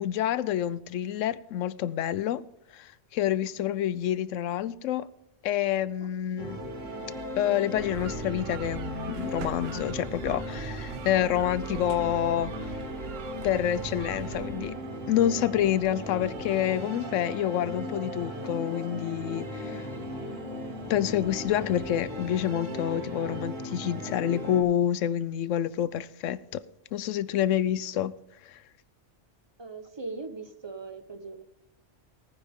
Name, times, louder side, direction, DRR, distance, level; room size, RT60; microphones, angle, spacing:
voice 1, 0.0-2.4 2.7-5.1 5.4-6.6 7.4-12.5 13.4-14.7 15.1-19.8 20.8-26.6 26.9-28.1 28.5-28.6, left 11 dB, 85° left, 1.0 m, -28 dB
sound 1, 6.4-24.6, equal, 85° right, 2.4 m, -37 dB
sound 2, 7.7-14.7, right 9 dB, 65° right, 0.7 m, -41 dB
sound 3, 13.0-13.1 14.0-22.0, right 5 dB, 45° right, 1.7 m, -50 dB
voice 2, 29.6-31.4, right 3 dB, 25° right, 1.0 m, -40 dB
18.5 x 9.8 x 3.6 m
omnidirectional pair, 1.3 m